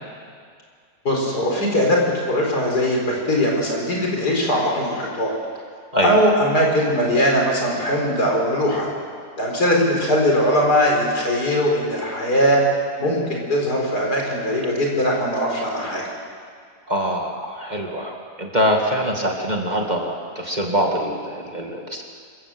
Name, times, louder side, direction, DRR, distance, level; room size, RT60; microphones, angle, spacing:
voice 1, 1.1-2.0 2.3-5.3 6.0-8.9 9.4-12.6 13.0-16.0, equal, 75° left, -1 dB, 5.1 m, -20 dB
voice 2, 16.9-22.0, equal, 25° right, 1 dB, 2.1 m, -24 dB
26.0 x 15.5 x 7.7 m, 2.1 s
omnidirectional pair, 1.7 m